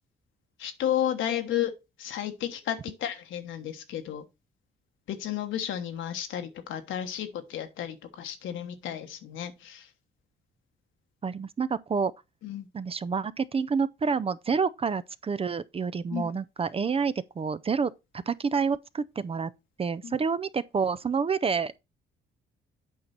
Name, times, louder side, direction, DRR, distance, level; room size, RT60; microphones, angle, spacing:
voice 1, 0.6-1.7 2.0-4.2 5.1-9.9 12.4-12.7 16.1-16.4 20.0-20.1, left 10 dB, 80° left, 1.3 m, -32 dB
voice 2, 11.2-12.1 12.7-17.9 18.3-19.5 19.8-21.8, right 5 dB, 30° right, 0.5 m, -28 dB
8.7 x 5.2 x 4.3 m
cardioid pair, 90°, 20 cm